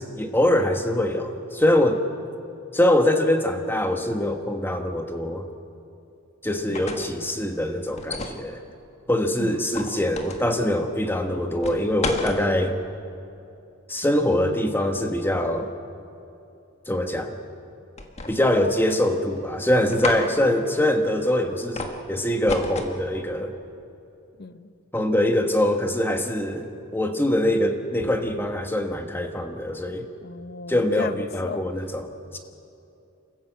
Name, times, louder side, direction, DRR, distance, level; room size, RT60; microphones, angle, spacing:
voice 1, 0.0-2.0 2.7-5.4 6.4-8.6 9.1-12.8 13.9-15.7 16.9-17.3 18.3-23.5 24.9-30.1 30.7-32.4, left 1 dB, 10° left, 5 dB, 1.3 m, -23 dB
sound 1, 6.5-7.2 8.0-8.4 9.7-10.5 11.6-12.4 18.0-18.6 18.9-19.4 19.9-20.2 21.8-22.0 22.5-23.0, left 3 dB, 30° left, 1.6 m, -31 dB
voice 2, 24.4-24.7 30.2-31.6, left 3 dB, 50° left, 12 dB, 0.8 m, -35 dB
28.5 x 14.5 x 8.0 m, 2.7 s
head